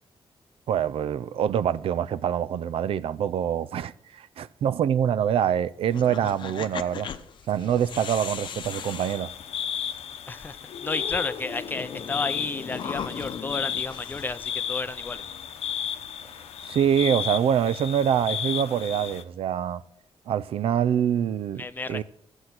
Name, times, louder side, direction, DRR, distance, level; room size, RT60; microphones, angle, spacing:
voice 1, 0.7-7.1 7.5-9.3 16.7-19.8 20.3-21.6 21.9-22.0, right 9 dB, 70° right, 0.5 m, -25 dB
sound 1, 5.9-10.0 10.4-10.5 10.7-14.8, left 7 dB, 50° left, 0.8 m, -38 dB
sound 2, 8.6-19.2, left 8 dB, 85° left, 0.8 m, -34 dB
voice 2, 10.3-15.2 21.6-22.0, left 3 dB, 20° left, 0.5 m, -32 dB
14.5 x 8.0 x 5.9 m
wide cardioid pair, 180°, 10 cm